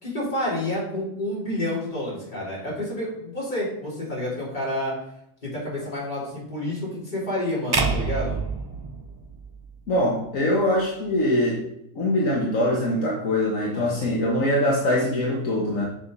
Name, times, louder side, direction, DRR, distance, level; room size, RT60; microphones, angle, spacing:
voice 1, 0.0-4.9 5.4-8.4 13.7-14.1, left 1 dB, 35° left, -6 dB, 4.2 m, -29 dB
sound 1, 7.7-10.0, right 4 dB, 30° right, 0.4 m, -27 dB
voice 2, 9.9-11.6 12.0-15.8, left 1 dB, 70° left, -3 dB, 1.9 m, -23 dB
7.3 x 6.1 x 5.4 m, 0.78 s
omnidirectional pair, 1.4 m